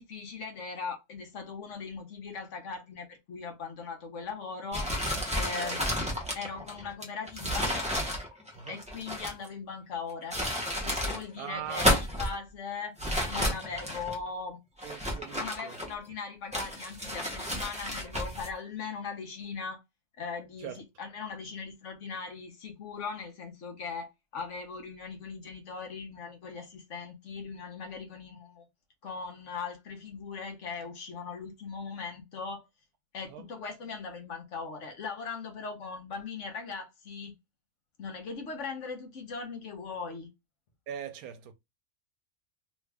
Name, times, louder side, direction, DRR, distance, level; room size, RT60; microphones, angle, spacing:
voice 1, 0.0-4.9 5.3-5.8 6.3-7.7 8.7-10.4 10.8-12.9 13.3-14.6 15.3-19.8 20.2-28.7 29.0-32.7 33.1-37.3 38.0-40.3, left 5 dB, 60° left, 1.1 m, -39 dB
sound 1, 4.7-9.5 10.1-11.2 11.6-12.3 13.0-14.2 14.8-16.1 16.5-18.5, equal, 10° right, 0.5 m, -31 dB
voice 2, 11.4-11.9 14.8-15.7 20.6-20.8 33.3-33.5 40.9-41.5, right 9 dB, 80° right, 1.1 m, -41 dB
3.1 x 2.4 x 3.3 m
omnidirectional pair, 1.5 m